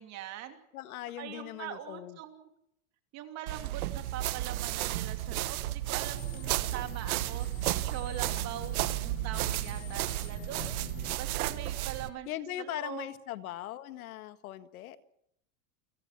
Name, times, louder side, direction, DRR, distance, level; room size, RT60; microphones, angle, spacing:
voice 1, 0.0-0.6 1.2-2.5 3.1-7.5 7.8-10.7 11.2-13.1, right 11 dB, 40° right, 7 dB, 2.8 m, -42 dB
voice 2, 0.7-2.2 12.3-15.0, left 13 dB, 90° left, 12 dB, 1.8 m, -40 dB
sound 1, 3.5-12.1, right 15 dB, 90° right, 1.2 m, -33 dB
sound 2, 6.2-11.2, left 10 dB, 65° left, 3.1 m, -47 dB
29.0 x 16.5 x 5.9 m, 0.77 s
supercardioid pair, 155°, 42 cm